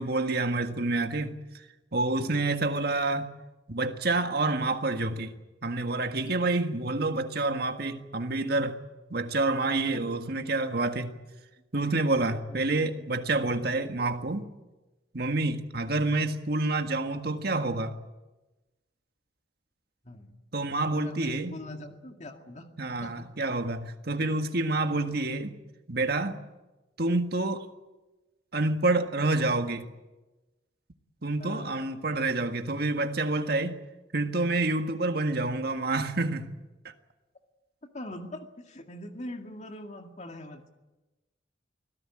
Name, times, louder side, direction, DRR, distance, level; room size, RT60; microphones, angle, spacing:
voice 1, 0.0-1.3 1.9-3.3 3.7-5.3 5.6-8.8 9.1-11.2 11.7-14.5 15.1-18.0 20.5-21.5 22.8-25.5 25.9-26.4 27.0-27.6 28.5-29.9 31.2-33.7 34.1-36.5 36.8-36.9, right 2 dB, 55° right, 1.7 m, -28 dB
voice 2, 12.5-12.9 20.0-20.4 20.9-22.7 23.0-23.3 24.0-24.4 24.9-25.2 31.4-31.8 37.8-40.7, left 1 dB, 40° left, 2.2 m, -43 dB
24.5 x 17.0 x 8.8 m
head